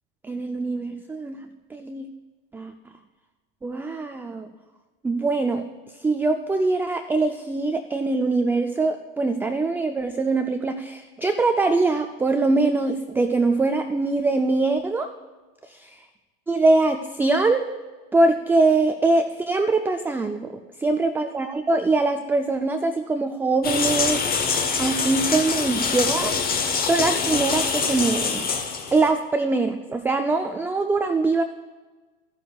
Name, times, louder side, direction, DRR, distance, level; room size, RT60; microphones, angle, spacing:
voice 1, 0.2-1.4 1.7-2.1 2.5-2.7 3.6-4.5 5.0-5.6 6.0-15.1 15.6-16.0 16.5-17.7 18.1-24.5 24.8-26.3 26.9-28.4 28.9-31.4, right 3 dB, 5° right, 6 dB, 0.3 m, -23 dB
sound 1, 23.6-29.1, left 5 dB, 30° left, 1.1 m, -25 dB
13.0 x 9.8 x 2.3 m, 1.3 s
supercardioid pair, 110°, 29 cm